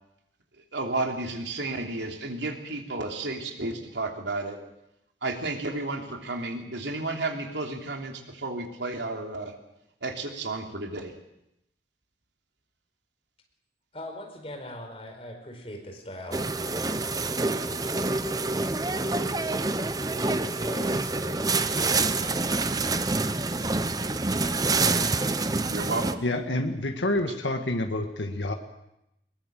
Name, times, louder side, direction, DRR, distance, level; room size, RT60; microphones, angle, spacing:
voice 1, 0.6-4.6 5.2-9.5 10.0-11.1 25.7-26.2, right 2 dB, 80° right, 3 dB, 3.1 m, -32 dB
voice 2, 13.9-25.4, left 1 dB, 30° left, 2 dB, 4.8 m, -44 dB
sound 1, 16.3-26.1, right 3 dB, 20° right, 0.8 m, -27 dB
voice 3, 26.2-28.5, left 1 dB, 90° left, 5 dB, 1.8 m, -28 dB
21.5 x 20.0 x 7.7 m, 0.84 s
head